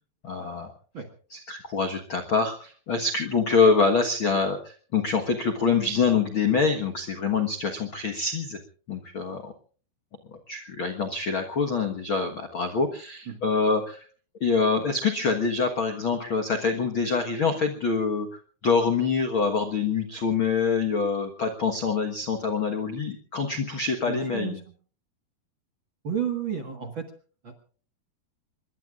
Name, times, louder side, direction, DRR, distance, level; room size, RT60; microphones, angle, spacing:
voice 1, 0.2-0.7 1.3-8.6 8.9-9.5 10.3-14.1 14.4-24.6, left 4 dB, 60° left, 4 dB, 1.3 m, -25 dB
voice 2, 24.1-24.5 26.0-27.1 27.4-27.5, right 8 dB, 45° right, 4 dB, 1.6 m, -31 dB
26.0 x 22.0 x 2.5 m, 0.42 s
omnidirectional pair, 4.5 m